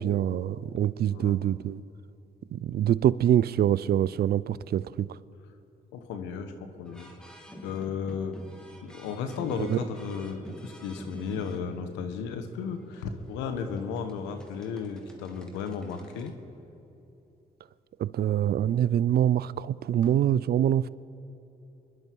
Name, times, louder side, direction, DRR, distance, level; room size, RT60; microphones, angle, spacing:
voice 1, 0.0-1.8 2.5-5.1 9.6-9.8 18.0-20.9, right 10 dB, 60° right, 20 dB, 0.4 m, -25 dB
voice 2, 5.9-7.1 7.6-8.4 8.8-16.3 20.0-20.1, left 6 dB, 90° left, 8 dB, 1.1 m, -34 dB
sound 1, 6.9-16.3, equal, 5° left, 2.6 m, -49 dB
25.0 x 11.0 x 4.6 m, 2.9 s
supercardioid pair, 50°, 18 cm